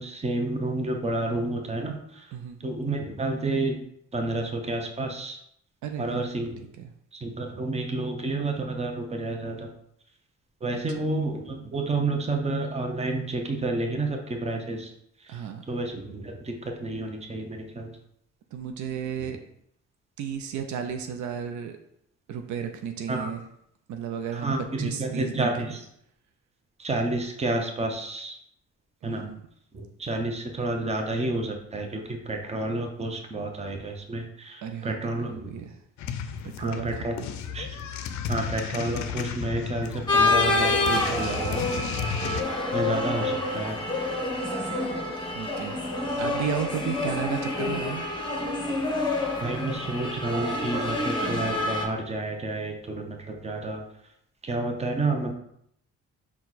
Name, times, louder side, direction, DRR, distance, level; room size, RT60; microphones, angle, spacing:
voice 1, 0.0-2.3 2.6-3.8 4.1-5.4 6.0-6.6 7.2-9.7 10.6-14.9 15.3-15.4 15.7-17.9 23.1-23.3 24.3-25.8 26.8-28.4 29.0-29.2 29.7-35.6 36.6-37.2 37.5-37.8 38.3-41.6 42.7-43.8 49.4-53.8 54.4-55.3, right 2 dB, 20° right, 3 dB, 0.7 m, -30 dB
voice 2, 5.8-6.3 6.8-6.9 10.7-11.1 15.3-15.6 18.5-19.4 20.2-21.8 22.3-23.4 23.9-25.7 29.0-29.4 34.6-35.8 36.4-37.3 45.3-45.8 46.2-48.1, right 7 dB, 70° right, 6 dB, 0.5 m, -33 dB
sound 1, 36.0-42.4, left 7 dB, 70° left, 0.5 m, -34 dB
sound 2, 40.1-51.8, left 2 dB, 15° left, 0.9 m, -27 dB
4.4 x 2.3 x 4.0 m, 0.73 s
cardioid pair, 90°, 30 cm